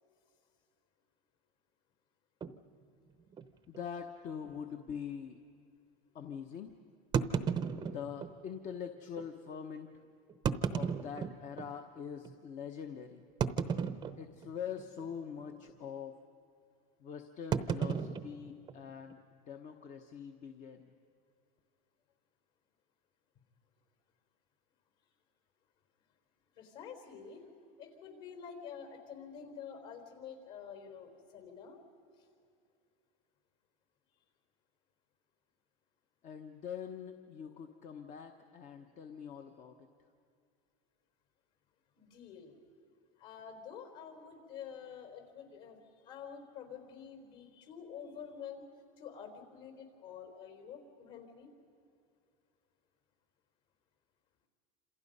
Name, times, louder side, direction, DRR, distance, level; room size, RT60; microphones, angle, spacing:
sound 1, 2.4-2.6 3.3-3.4 3.7-3.8 4.4-4.6 7.1-8.3 9.2-9.3 10.3-11.7 12.2-12.3 13.4-14.5 14.8-15.1 15.4-15.7 17.5-19.1, right 7 dB, 20° right, 0.7 m, -34 dB
voice 1, 3.7-5.4 6.1-6.7 7.9-10.0 10.7-13.2 14.2-16.2 17.0-20.9 36.2-39.9, left 7 dB, 35° left, 6 dB, 1.1 m, -44 dB
voice 2, 26.6-27.5 27.8-31.8 42.0-42.5 43.2-48.6 49.0-51.5, left 7 dB, 55° left, 5 dB, 4.4 m, -48 dB
27.5 x 27.5 x 5.5 m, 2.4 s
supercardioid pair, 145°, 21 cm